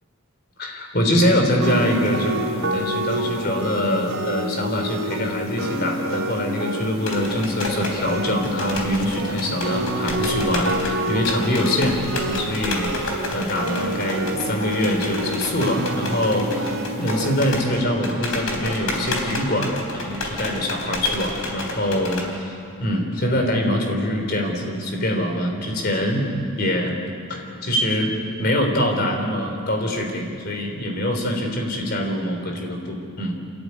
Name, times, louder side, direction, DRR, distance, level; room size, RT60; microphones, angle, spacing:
voice 1, 0.6-22.5 22.8-26.3 26.6-27.0 27.3-28.1 28.4-33.3, left 1 dB, 45° left, 3 dB, 3.6 m, -24 dB
sound 1, 1.6-17.6, right 1 dB, 85° right, 3.3 m, -28 dB
sound 2, 7.1-22.3, left 2 dB, 75° left, 3.9 m, -30 dB
27.0 x 14.0 x 9.7 m, 2.4 s
head